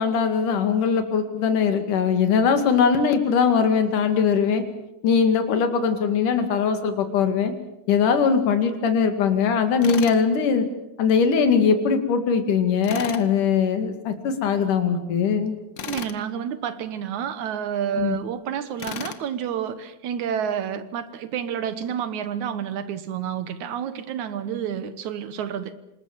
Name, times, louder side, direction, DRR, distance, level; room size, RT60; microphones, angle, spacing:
voice 1, 0.0-4.6 5.0-7.5 7.9-10.7 11.0-15.6 18.0-18.2, left 6 dB, 65° left, 8 dB, 3.7 m, -21 dB
Tools, 9.8-10.2 12.8-13.3 15.8-16.2 18.8-19.2, left 8 dB, 80° left, 1.0 m, -34 dB
voice 2, 15.9-25.8, right 8 dB, 65° right, 13 dB, 2.4 m, -29 dB
27.0 x 20.0 x 7.4 m, 0.89 s
omnidirectional pair, 4.0 m